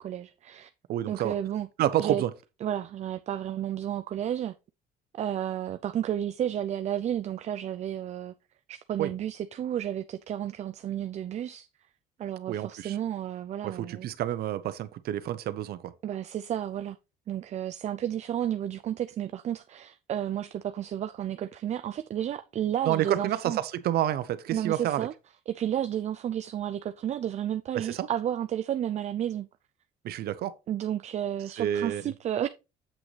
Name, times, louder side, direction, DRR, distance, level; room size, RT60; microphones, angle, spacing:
voice 1, 0.0-0.7 1.1-1.7 2.0-2.2 2.6-4.5 5.1-8.3 8.7-11.7 12.2-14.1 16.0-17.0 17.3-23.6 24.5-25.1 25.5-29.5 30.7-32.5, right 10 dB, 45° right, 0.4 m, -32 dB
voice 2, 0.9-1.3 1.8-2.3 9.0-9.1 12.5-13.0 13.6-15.9 22.9-25.1 27.7-28.1 30.0-30.5 31.6-32.0, right 12 dB, 65° right, 0.8 m, -29 dB
7.7 x 6.2 x 3.2 m
cardioid pair, 110°, 17 cm